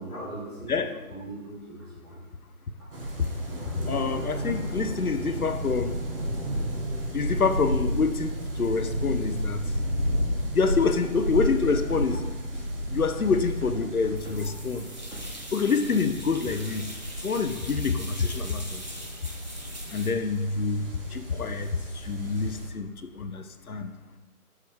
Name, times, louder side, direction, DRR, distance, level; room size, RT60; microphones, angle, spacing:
voice 1, 0.0-0.8 1.1-2.2 2.8-2.9 14.4-14.5, right 2 dB, 5° right, -15 dB, 1.4 m, -40 dB
sound 1, 2.9-22.7, equal, 40° right, 1.0 m, -32 dB
voice 2, 3.5-6.0 7.1-9.6 10.5-12.2 12.9-14.9 15.5-16.9 17.2-18.8 19.9-23.9, left 5 dB, 75° left, 8 dB, 0.7 m, -27 dB
sound 2, 11.5-12.8 13.2-14.5 15.1-15.3 16.0-16.1, right 1 dB, 55° right, 2.2 m, -38 dB
sound 3, 14.1-20.1, equal, 30° left, 0.5 m, -42 dB
6.9 x 4.8 x 3.4 m, 1.1 s
figure-of-eight pair, 150°, 44 cm